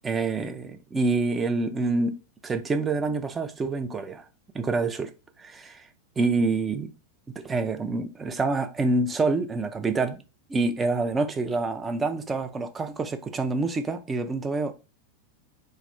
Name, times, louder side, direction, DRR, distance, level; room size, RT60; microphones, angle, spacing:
voice 1, 0.0-2.2 2.4-4.2 4.5-5.1 5.4-5.9 6.2-6.9 7.3-10.2 10.5-14.7, right 3 dB, 15° right, 0.3 m, -27 dB
2.3 x 2.0 x 3.3 m
figure-of-eight pair, 90°, 0 cm